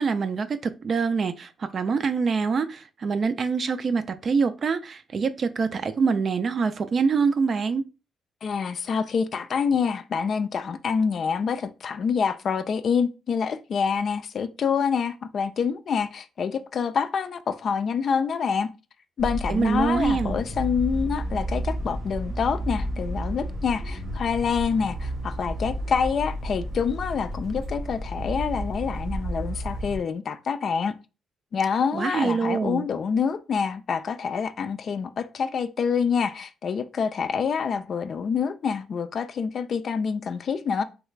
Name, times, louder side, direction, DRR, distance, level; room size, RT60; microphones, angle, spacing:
voice 1, 0.0-7.9 19.5-20.4 31.9-32.9, right 5 dB, 45° right, 0.4 m, -25 dB
voice 2, 8.4-18.7 19.2-31.0 31.5-40.8, left 6 dB, 55° left, 0.3 m, -26 dB
sound 1, 19.2-30.0, right 1 dB, 85° right, 1.1 m, -31 dB
3.3 x 2.4 x 3.1 m
cardioid pair, 90°, 0 cm